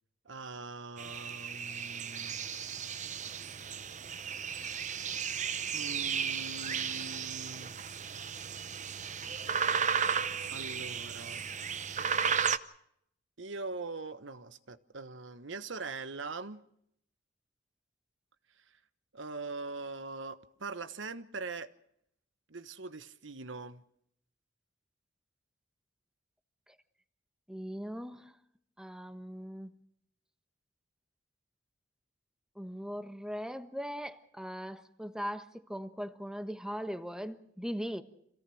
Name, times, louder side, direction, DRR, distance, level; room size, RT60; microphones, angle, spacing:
voice 1, 0.2-2.5 5.7-7.7 10.5-11.5 13.4-16.6 19.1-21.7 22.5-23.8, right 3 dB, 75° right, 1.2 m, -42 dB
sound 1, 1.0-12.6, right 7 dB, 40° right, 0.8 m, -34 dB
voice 2, 27.5-28.4 28.8-29.7 32.6-38.0, equal, 5° right, 1.2 m, -39 dB
27.0 x 17.5 x 6.4 m
head